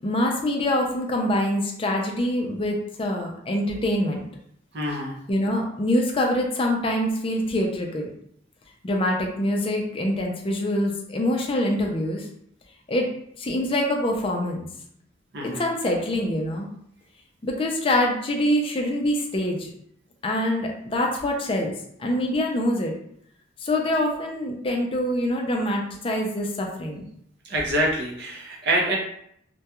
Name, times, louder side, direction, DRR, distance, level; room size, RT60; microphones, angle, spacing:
voice 1, 0.0-4.3 5.3-8.1 8.8-12.3 12.9-13.1 13.4-14.7 15.4-16.7 17.4-19.7 20.2-21.7 22.0-22.9 23.6-27.0, left 1 dB, 30° left, 1 dB, 0.4 m, -25 dB
voice 2, 4.7-5.2 15.3-15.6 27.4-29.0, right 1 dB, 55° right, -1 dB, 0.6 m, -25 dB
2.3 x 2.2 x 2.8 m, 0.70 s
head